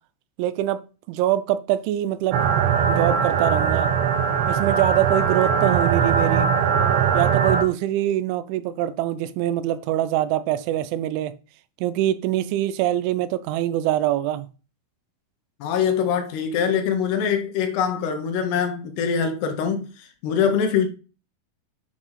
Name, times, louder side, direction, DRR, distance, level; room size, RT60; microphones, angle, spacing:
voice 1, 0.4-0.8 1.1-2.4 2.9-3.9 4.5-6.5 7.1-11.3 11.8-14.5, right 13 dB, 90° right, 3.1 m, -24 dB
sound 1, 2.3-7.6, right 7 dB, 70° right, 2.9 m, -20 dB
voice 2, 15.6-20.9, left 7 dB, 75° left, 2.8 m, -23 dB
8.2 x 4.7 x 5.7 m
omnidirectional pair, 5.3 m